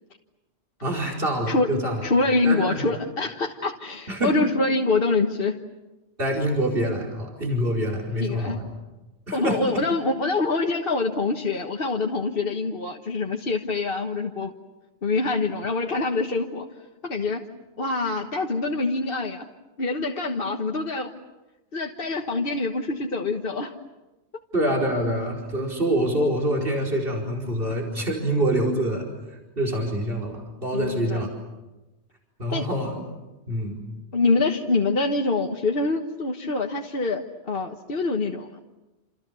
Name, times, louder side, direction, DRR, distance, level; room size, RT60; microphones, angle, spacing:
voice 1, 0.8-2.0 2.4-2.7 4.1-4.3 6.2-8.6 9.3-9.6 24.5-29.0 29.6-31.3 32.4-33.0 33.5-33.8, right 1 dB, 55° right, -1 dB, 5.1 m, -25 dB
voice 2, 2.0-5.6 8.2-8.6 9.3-14.5 15.0-16.7 17.0-17.4 17.8-19.4 19.8-21.1 21.7-23.7 30.7-31.3 32.5-32.7 34.1-38.6, left 3 dB, 55° left, 2 dB, 1.6 m, -25 dB
28.5 x 28.5 x 7.1 m, 1.0 s
omnidirectional pair, 1.2 m